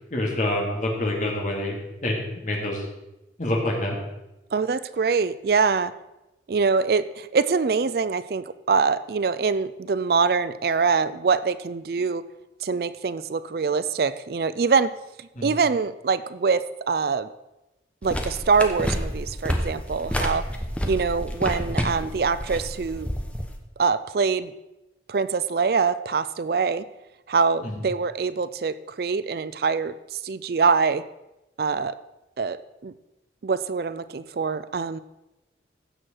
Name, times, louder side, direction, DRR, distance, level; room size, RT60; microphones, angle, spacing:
voice 1, 0.1-1.7 2.0-2.2 2.4-2.8 3.4-4.0 15.4-15.5 27.6-27.8, left 1 dB, 45° left, -1 dB, 2.4 m, -26 dB
voice 2, 4.5-5.9 6.5-12.2 12.6-14.9 15.2-17.3 18.0-20.4 20.9-23.1 23.8-24.5 25.1-26.8 27.3-31.0 31.6-31.9 32.4-32.6 32.8-32.9 33.4-35.0, right 5 dB, 55° right, 15 dB, 0.4 m, -24 dB
sound 1, 18.0-23.6, equal, 5° left, 1.0 m, -29 dB
15.5 x 6.5 x 4.5 m, 0.97 s
head